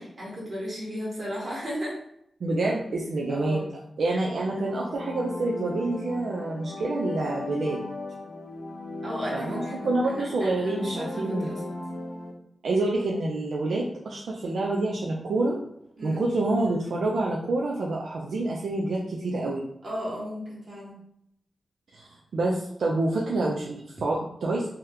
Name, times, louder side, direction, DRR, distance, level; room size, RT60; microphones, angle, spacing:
voice 1, 0.0-2.0 3.3-3.7 9.0-11.7 16.0-16.3 19.8-21.0, equal, 55° right, -5 dB, 1.4 m, -35 dB
voice 2, 2.4-3.6 4.0-7.9 9.3-11.5 12.6-15.6 16.0-19.6 21.9-24.7, right 2 dB, 85° right, -2 dB, 0.4 m, -27 dB
sound 1, 4.4-12.3, left 2 dB, 80° left, 0.6 m, -37 dB
2.9 x 2.1 x 3.6 m, 0.75 s
wide cardioid pair, 90°, 0 cm